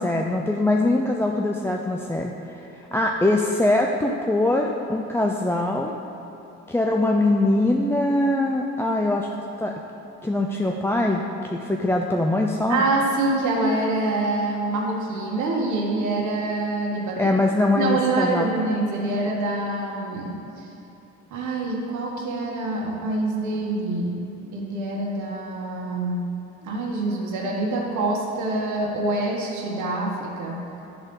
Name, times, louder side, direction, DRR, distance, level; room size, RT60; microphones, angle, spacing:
voice 1, 0.0-5.9 6.7-9.3 9.6-9.7 10.2-11.2 11.5-12.8 17.2-18.5, left 2 dB, 10° left, 1 dB, 0.4 m, -22 dB
voice 2, 12.7-17.3 17.7-20.7 21.3-26.3 26.6-30.6, right 2 dB, 75° right, -2 dB, 1.3 m, -26 dB
10.5 x 4.0 x 5.3 m, 2.9 s
cardioid pair, 90°, 30 cm